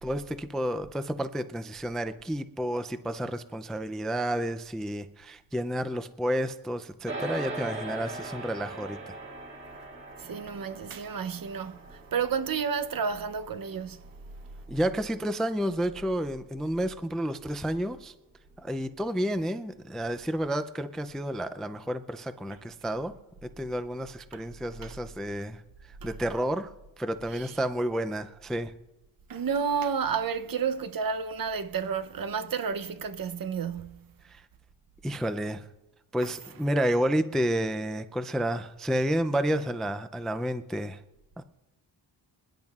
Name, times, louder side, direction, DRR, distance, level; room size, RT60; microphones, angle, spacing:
voice 1, 0.0-9.2 14.7-18.1 18.6-23.1 23.4-25.6 25.9-28.7 34.2-34.4 35.0-35.6 36.1-41.0 41.4-41.5, equal, ahead, 0.3 m, -30 dB
sound 1, 7.1-16.6, right 2 dB, 25° right, 1.9 m, -42 dB
voice 2, 10.2-14.0 24.3-24.4 24.8-24.9 26.0-26.1 27.3-27.5 29.3-34.1, right 6 dB, 50° right, 0.7 m, -31 dB
26.0 x 10.5 x 2.4 m
wide cardioid pair, 145°, 45 cm